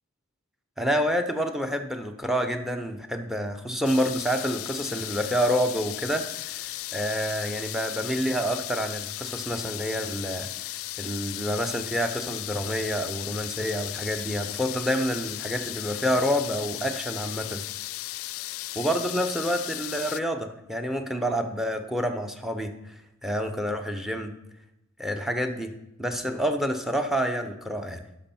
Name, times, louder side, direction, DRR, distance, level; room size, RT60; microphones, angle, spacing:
voice 1, 0.8-6.3 6.5-10.5 11.0-17.6 18.7-22.7 23.2-24.3 25.0-25.7 26.0-28.0, equal, ahead, 7 dB, 0.7 m, -28 dB
sound 1, 3.8-20.2, left 17 dB, 85° left, 0.3 m, -36 dB
11.0 x 6.2 x 4.3 m, 0.90 s
head